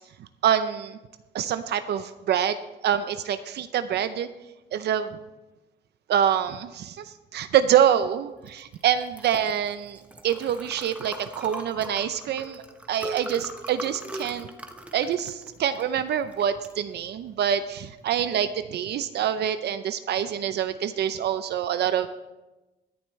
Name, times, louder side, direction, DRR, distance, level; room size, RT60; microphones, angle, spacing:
voice 1, 0.2-1.0 1.3-2.6 2.8-4.3 4.7-5.1 6.1-12.6 12.9-14.5 14.9-22.1, right 9 dB, 65° right, 10 dB, 0.6 m, -26 dB
Liquid, 8.4-18.6, right 1 dB, 5° right, 1.0 m, -41 dB
17.5 x 10.5 x 3.2 m, 1.1 s
cardioid pair, 110°, 18 cm